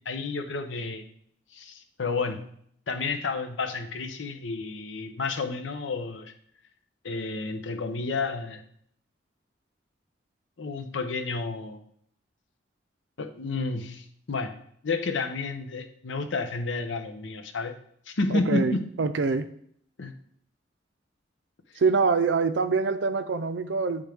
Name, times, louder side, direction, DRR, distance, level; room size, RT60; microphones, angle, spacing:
voice 1, 0.1-1.0 1.5-2.5 2.9-6.3 7.0-8.6 10.6-11.8 13.2-14.5 14.8-17.7 18.1-18.9 20.0-20.1, left 3 dB, 85° left, 7 dB, 0.7 m, -31 dB
voice 2, 18.3-19.5 21.8-24.1, right 4 dB, 75° right, 11 dB, 0.5 m, -25 dB
8.9 x 3.6 x 3.5 m, 0.65 s
head